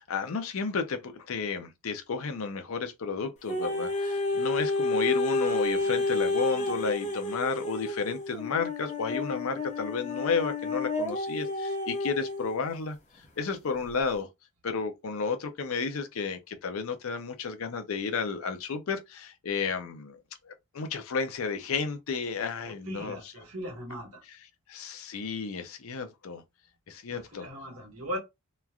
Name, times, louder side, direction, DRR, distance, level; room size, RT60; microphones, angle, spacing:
voice 1, 0.0-13.0 13.4-14.3 14.6-20.2 20.4-23.2 24.7-26.4 26.9-27.5, left 5 dB, 70° left, 0.5 m, -32 dB
sound 1, 3.5-12.6 13.2-13.3, left 2 dB, 35° left, 0.7 m, -30 dB
voice 2, 22.6-24.2 27.1-28.2, equal, 75° right, 1.4 m, -39 dB
3.0 x 2.3 x 2.3 m
head